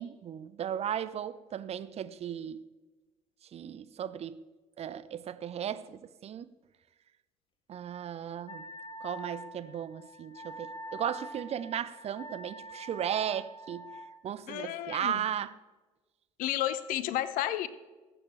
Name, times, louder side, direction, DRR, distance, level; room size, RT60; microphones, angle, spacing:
voice 1, 0.0-2.7 3.5-4.5 4.8-6.5 7.7-8.7 9.0-13.9 14.2-15.5, right 9 dB, 40° right, 0.7 m, -36 dB
Wind instrument woodwind instrument, 8.5-14.1, right 1 dB, 30° left, 1.6 m, -45 dB
voice 2, 14.5-15.2 16.4-17.7, left 13 dB, 55° left, 0.9 m, -32 dB
20.5 x 8.9 x 3.1 m
figure-of-eight pair, 50°, 17 cm